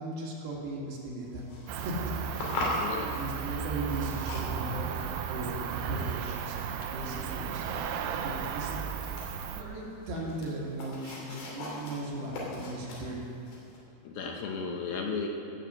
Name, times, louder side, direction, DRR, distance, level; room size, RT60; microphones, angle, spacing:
voice 1, 0.0-1.5 1.7-5.5 5.9-8.8 9.5-13.2 13.6-13.7, right 1 dB, 65° right, -4 dB, 3.7 m, -38 dB
sound 1, 1.2-13.8, left 1 dB, 90° left, 4.9 m, -41 dB
Cricket, 1.7-9.6, right 8 dB, 80° right, 2.0 m, -35 dB
voice 2, 2.8-3.1 14.0-15.3, left 5 dB, 70° left, 0 dB, 2.6 m, -34 dB
17.5 x 6.5 x 7.6 m, 2.7 s
omnidirectional pair, 4.9 m